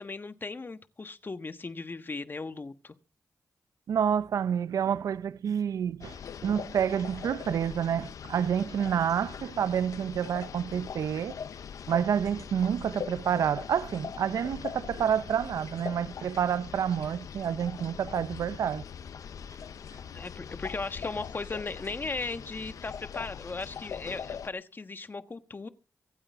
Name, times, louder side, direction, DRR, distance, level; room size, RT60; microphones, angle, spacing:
voice 1, 0.0-2.9 20.1-25.7, left 3 dB, 35° left, 1.4 m, -37 dB
voice 2, 3.9-6.2 6.4-11.4 11.9-18.8, right 8 dB, 80° right, 0.6 m, -28 dB
sound 1, 6.0-24.5, left 7 dB, 75° left, 0.7 m, -41 dB
25.0 x 8.7 x 3.6 m
cardioid pair, 60°, 6 cm